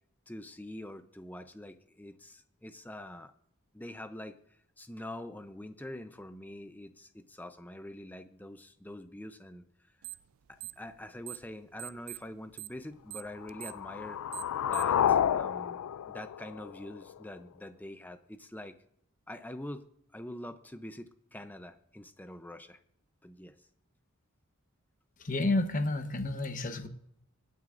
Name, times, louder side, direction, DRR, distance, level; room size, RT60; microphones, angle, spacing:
voice 1, 0.3-3.3 3.7-4.4 4.8-9.6 10.5-14.2 14.7-18.8 19.3-19.9 20.1-22.8 23.2-23.5, left 1 dB, 10° left, 0.6 m, -45 dB
sound 1, 10.0-10.3 10.6-11.5 11.8-15.0, right 22 dB, 75° right, 0.3 m, -43 dB
sound 2, 13.4-17.4, left 9 dB, 85° left, 0.3 m, -30 dB
voice 2, 25.2-26.9, left 2 dB, 40° left, 1.0 m, -30 dB
24.5 x 9.2 x 2.6 m
head